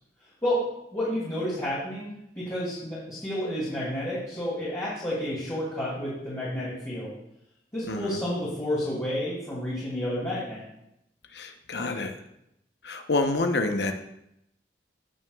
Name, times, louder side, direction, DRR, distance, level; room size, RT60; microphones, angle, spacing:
voice 1, 0.9-2.1 2.4-7.1 7.7-10.6, left 1 dB, 20° left, -9 dB, 2.5 m, -30 dB
voice 2, 7.9-8.2 11.3-12.2 12.8-13.9, left 2 dB, 65° left, 6 dB, 0.9 m, -27 dB
16.0 x 6.1 x 2.3 m, 0.80 s
head